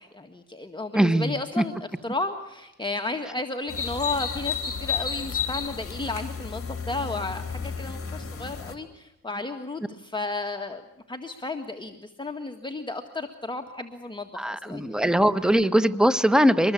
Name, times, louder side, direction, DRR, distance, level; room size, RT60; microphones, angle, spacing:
voice 1, 0.0-1.8 2.0-10.8 11.1-15.1 15.4-15.6, left 2 dB, 15° left, 5 dB, 1.9 m, -33 dB
voice 2, 0.9-1.6 14.4-16.7, equal, ahead, 13 dB, 1.4 m, -21 dB
sound 1, 3.7-8.8, left 6 dB, 45° left, 3.4 m, -32 dB
25.5 x 21.0 x 8.5 m, 0.92 s
cardioid pair, 75°, 31 cm